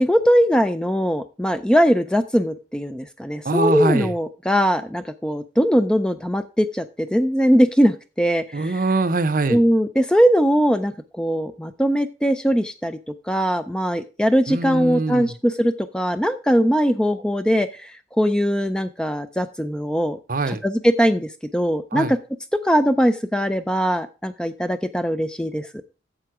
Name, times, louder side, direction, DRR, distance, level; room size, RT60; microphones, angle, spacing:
voice 1, 0.1-6.8 7.1-8.7 9.5-10.9 11.2-13.0 13.3-17.9 18.2-20.2 20.5-22.1 22.6-25.8, equal, 5° left, 10 dB, 0.4 m, -20 dB
voice 2, 3.4-4.1 8.5-9.6 14.5-15.3 20.3-20.6 21.9-22.1, right 3 dB, 45° right, 13 dB, 0.7 m, -23 dB
9.0 x 7.0 x 4.8 m, 0.33 s
head